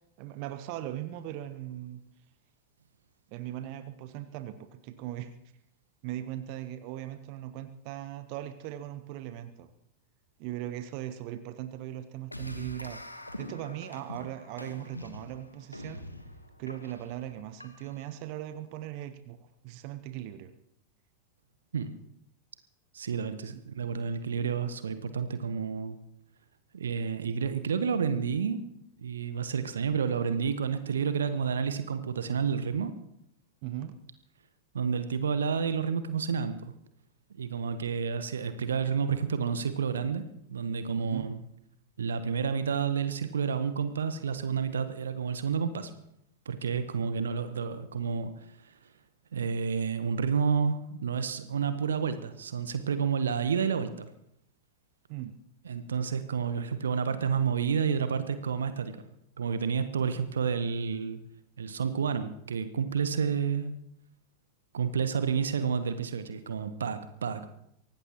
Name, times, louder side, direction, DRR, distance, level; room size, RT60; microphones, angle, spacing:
voice 1, 0.2-2.0 3.3-5.3 6.0-9.7 10.4-13.0 13.4-16.0 16.6-20.5 23.5-23.6 33.6-34.0 41.0-41.3 55.1-55.3, right 13 dB, 45° right, 10 dB, 1.0 m, -39 dB
sound 1, 12.3-18.1, left 1 dB, 85° left, 1.4 m, -44 dB
voice 2, 22.9-26.0 26.7-28.6 29.0-32.9 34.7-36.7 37.4-41.4 42.0-45.9 46.4-48.7 49.3-54.1 55.6-59.0 59.4-61.2 61.6-63.7 64.7-67.5, right 6 dB, 70° right, 11 dB, 1.1 m, -30 dB
24.0 x 17.5 x 3.0 m, 0.77 s
figure-of-eight pair, 90°, 0 cm